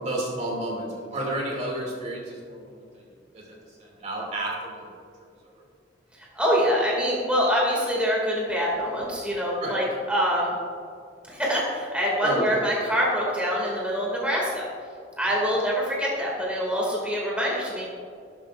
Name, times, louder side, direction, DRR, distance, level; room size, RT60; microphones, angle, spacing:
voice 1, 0.0-3.0 3.3-4.8 5.4-5.5 9.6-9.8 12.2-12.6, right 1 dB, 40° right, -2 dB, 2.6 m, -31 dB
voice 2, 6.3-10.5 11.3-14.7 15.2-17.9, equal, 5° right, -4 dB, 2.3 m, -25 dB
14.5 x 12.0 x 2.5 m, 2.3 s
head